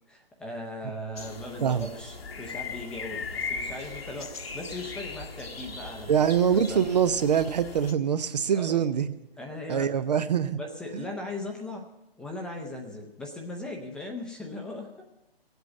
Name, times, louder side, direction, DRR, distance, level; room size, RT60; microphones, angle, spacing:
voice 1, 0.1-6.3 6.7-6.9 8.5-8.8 9.4-10.0 10.6-11.9 12.2-15.0, left 1 dB, 5° left, 1 dB, 0.6 m, -38 dB
sound 1, 1.2-7.9, left 4 dB, 75° left, 1.5 m, -38 dB
voice 2, 6.1-9.1 9.7-10.6 10.9-11.0, right 8 dB, 45° right, 12 dB, 0.6 m, -24 dB
17.0 x 8.0 x 7.1 m, 0.92 s
figure-of-eight pair, 140°, 30 cm